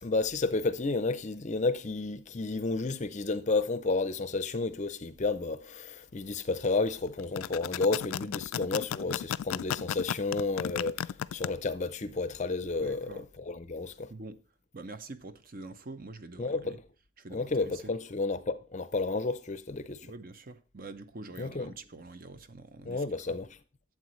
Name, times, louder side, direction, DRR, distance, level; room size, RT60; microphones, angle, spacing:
voice 1, 0.0-14.1 16.4-16.8 17.3-20.1 21.4-21.7 22.9-23.5, left 3 dB, 35° left, 0.5 m, -31 dB
sound 1, 7.2-11.5, left 10 dB, 85° left, 0.3 m, -34 dB
voice 2, 12.8-13.2 14.1-14.4 14.7-16.8 17.2-17.9 20.0-23.3, right 3 dB, 45° right, 0.7 m, -45 dB
12.0 x 7.7 x 3.1 m
head